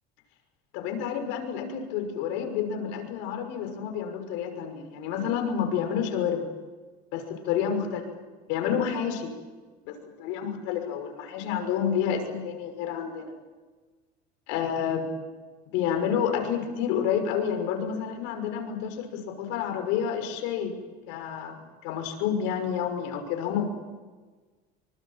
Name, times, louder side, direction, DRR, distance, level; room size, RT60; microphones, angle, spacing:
voice 1, 0.7-6.5 7.1-8.0 8.5-9.3 9.8-13.3 14.5-15.1 15.7-20.7 21.1-23.6, left 8 dB, 75° left, 6 dB, 6.1 m, -29 dB
26.0 x 24.5 x 7.5 m, 1.4 s
cardioid pair, 135°, 20 cm